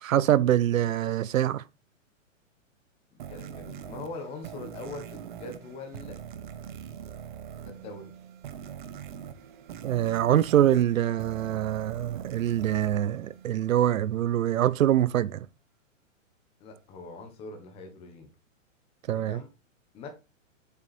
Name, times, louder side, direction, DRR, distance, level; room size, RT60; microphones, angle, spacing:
voice 1, 0.0-1.6 9.8-15.5 19.1-19.4, right 11 dB, 80° right, 0.8 m, -24 dB
sound 1, 3.2-14.0, right 8 dB, 40° right, 0.9 m, -43 dB
voice 2, 3.3-6.2 7.6-8.1 16.6-18.3 19.1-19.5 19.9-20.1, left 3 dB, 15° left, 1.4 m, -42 dB
7.4 x 6.3 x 4.3 m
hypercardioid pair, 170°, 39 cm